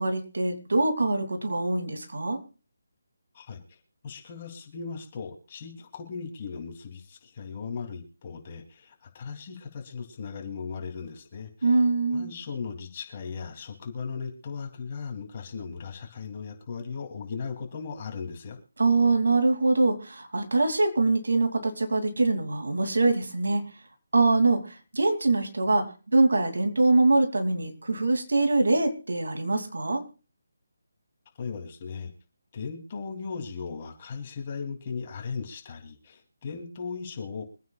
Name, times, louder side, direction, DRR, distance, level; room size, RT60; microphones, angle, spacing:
voice 1, 0.0-2.4 11.6-12.3 18.8-23.6 24.1-30.1, right 2 dB, 80° right, 6 dB, 2.7 m, -24 dB
voice 2, 4.0-11.8 12.1-18.6 31.4-32.1 32.5-37.4, left 5 dB, 35° left, 2 dB, 3.0 m, -37 dB
25.0 x 9.3 x 2.4 m, 0.36 s
figure-of-eight pair, 160°, 0 cm